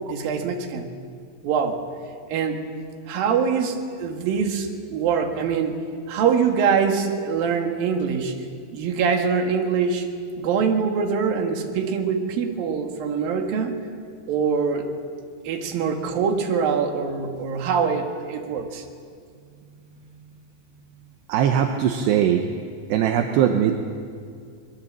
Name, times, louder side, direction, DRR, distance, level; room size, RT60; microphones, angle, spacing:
voice 1, 0.1-0.9 1.4-1.8 2.3-2.6 3.1-5.8 6.1-8.3 8.7-10.1 10.4-13.8 14.3-14.9 15.4-18.8, right 6 dB, 60° right, 3 dB, 3.3 m, -24 dB
voice 2, 21.3-22.5 22.9-23.7, right 9 dB, 75° right, 4 dB, 3.0 m, -20 dB
24.0 x 21.5 x 7.6 m, 2.2 s
omnidirectional pair, 5.2 m